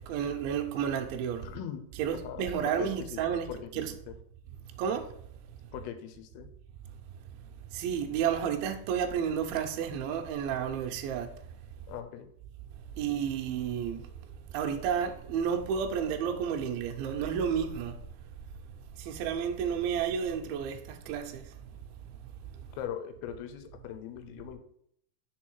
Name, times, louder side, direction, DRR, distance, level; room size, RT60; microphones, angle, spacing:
voice 1, 0.1-1.4 2.0-3.5 3.7-3.9 4.8-5.1 7.7-11.3 13.0-14.0 14.5-17.9 19.1-21.4, right 8 dB, 80° right, 2.4 m, -31 dB
voice 2, 1.4-1.8 2.2-3.2 3.5-4.1 5.7-6.5 11.9-12.3 22.8-24.6, left 10 dB, 85° left, 2.6 m, -40 dB
6.3 x 3.9 x 4.5 m
omnidirectional pair, 4.5 m